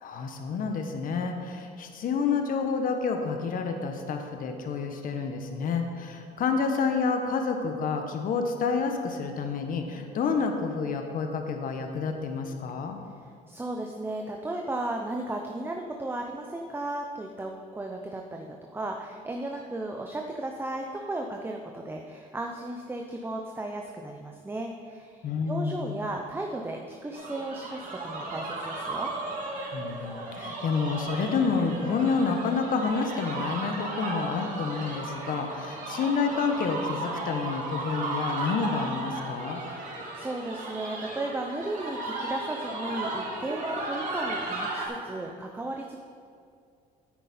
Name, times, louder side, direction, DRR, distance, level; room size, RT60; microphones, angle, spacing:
voice 1, 0.0-13.0 25.2-25.9 29.7-39.6, left 5 dB, 55° left, 5 dB, 1.1 m, -29 dB
voice 2, 13.5-29.1 39.6-46.0, right 2 dB, 15° right, 1 dB, 0.7 m, -35 dB
sound 1, 27.1-44.9, right 2 dB, 50° right, 2.7 m, -35 dB
9.5 x 9.0 x 4.3 m, 2.3 s
cardioid pair, 110°, 17 cm